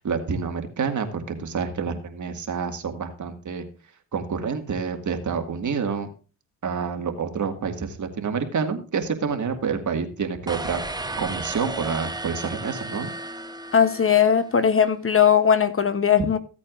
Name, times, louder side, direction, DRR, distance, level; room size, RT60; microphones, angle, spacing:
voice 1, 0.0-3.6 4.1-6.1 6.6-10.8 11.2-13.1, right 6 dB, 45° right, 2.0 m, -28 dB
sound 1, 10.5-14.7, right 2 dB, 10° right, 1.0 m, -34 dB
voice 2, 13.7-16.4, left 8 dB, 30° left, 1.0 m, -19 dB
15.5 x 8.3 x 2.5 m
cardioid pair, 80°, 41 cm